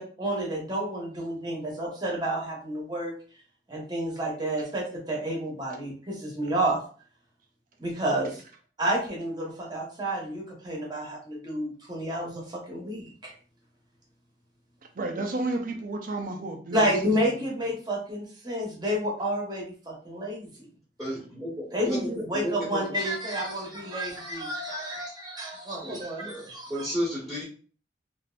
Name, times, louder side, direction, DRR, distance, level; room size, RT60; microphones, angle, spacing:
voice 1, 0.0-3.1 3.7-6.8 7.8-8.4 8.8-13.3 16.7-20.7 21.7-26.9, right 1 dB, 25° right, -2 dB, 1.1 m, -30 dB
voice 2, 15.0-16.9 17.3-17.4, right 2 dB, 50° right, 2 dB, 0.5 m, -32 dB
voice 3, 21.0-23.0 25.8-26.0 26.3-27.4, equal, 5° right, -9 dB, 1.2 m, -33 dB
3.4 x 2.6 x 2.4 m, 0.42 s
head